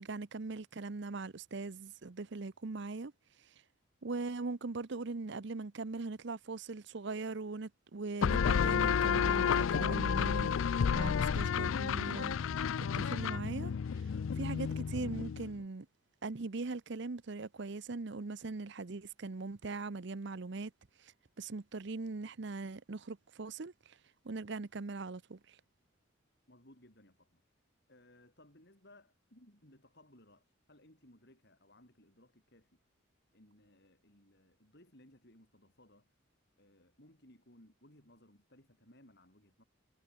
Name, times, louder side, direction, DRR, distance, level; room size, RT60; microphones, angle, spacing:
voice 1, 0.0-3.1 3.4-3.6 4.0-10.5 10.9-12.4 12.8-15.9 16.2-20.7 21.0-24.0 24.2-25.6, right 3 dB, 55° right, 0.7 m, -41 dB
sound 1, 8.2-15.6, left 7 dB, 75° left, 0.4 m, -31 dB
voice 2, 26.5-27.4 27.9-32.8 33.3-36.2 36.6-39.6, left 1 dB, 50° left, 6.2 m, -62 dB
head